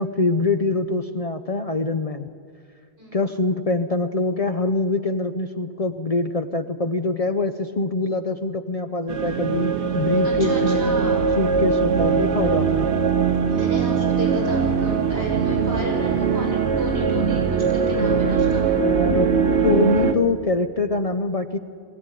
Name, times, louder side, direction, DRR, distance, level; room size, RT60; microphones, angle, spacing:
voice 1, 0.0-2.3 3.1-10.9 11.4-12.9 18.8-19.3 19.6-21.6, left 3 dB, 40° left, 9 dB, 0.6 m, -24 dB
sound 1, 9.1-20.1, right 6 dB, 80° right, 1.3 m, -21 dB
voice 2, 10.2-11.3 13.5-18.7, equal, 60° right, -1 dB, 6.2 m, -32 dB
20.5 x 15.5 x 9.9 m, 2.2 s
omnidirectional pair, 1.1 m